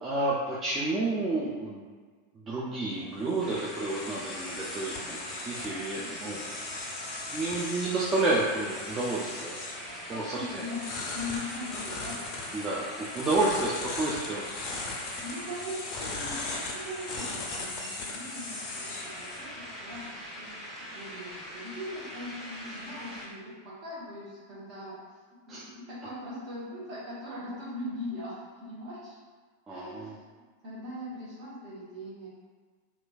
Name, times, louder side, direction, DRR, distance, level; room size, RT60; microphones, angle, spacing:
voice 1, 0.0-1.8 2.5-5.2 5.4-6.5 7.3-9.6 10.1-10.6 12.5-12.8 13.1-14.5 25.5-25.7 29.7-30.1, right 2 dB, 20° right, -6 dB, 0.4 m, -30 dB
sound 1, 2.9-20.1, left 3 dB, 40° left, 0.5 m, -39 dB
sound 2, 3.4-23.3, equal, 5° right, 0.7 m, -43 dB
voice 2, 9.7-10.8 11.1-12.8 15.2-25.0 25.5-29.2 29.7-32.3, left 1 dB, 40° right, -8 dB, 1.1 m, -41 dB
2.9 x 2.4 x 2.3 m, 1.5 s
figure-of-eight pair, 90°, 0 cm